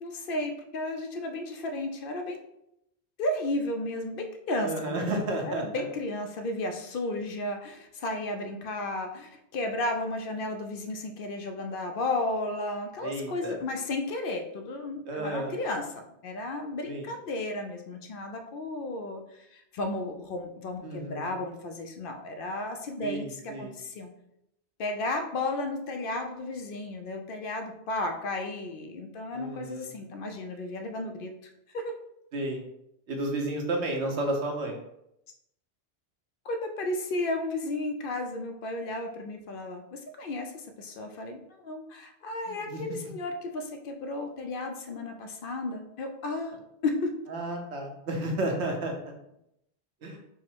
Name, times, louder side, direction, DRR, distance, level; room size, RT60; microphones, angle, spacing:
voice 1, 0.0-2.4 3.2-5.1 5.4-24.1 24.8-31.3 31.7-32.0 36.4-46.6 46.8-47.1, left 2 dB, 60° left, 4 dB, 0.7 m, -33 dB
voice 2, 4.6-5.8 13.0-13.6 15.1-15.6 16.8-17.1 20.8-21.3 23.0-23.7 29.3-29.9 32.3-32.6 33.1-34.8 42.5-42.8 47.3-49.1 50.0-50.2, right 1 dB, 90° right, 2 dB, 1.1 m, -32 dB
4.6 x 2.0 x 4.4 m, 0.81 s
omnidirectional pair, 1.1 m